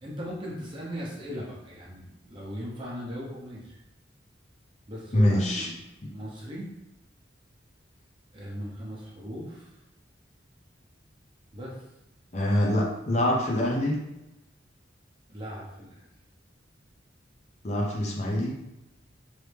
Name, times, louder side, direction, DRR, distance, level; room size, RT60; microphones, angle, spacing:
voice 1, 0.0-3.8 4.9-5.7 6.1-6.7 8.3-9.8 11.5-11.8 15.3-16.1, equal, 25° right, -5 dB, 0.8 m, -38 dB
voice 2, 5.1-5.7 12.3-14.0 17.6-18.5, left 1 dB, 35° left, -2 dB, 0.6 m, -24 dB
3.1 x 2.7 x 3.3 m, 0.91 s
head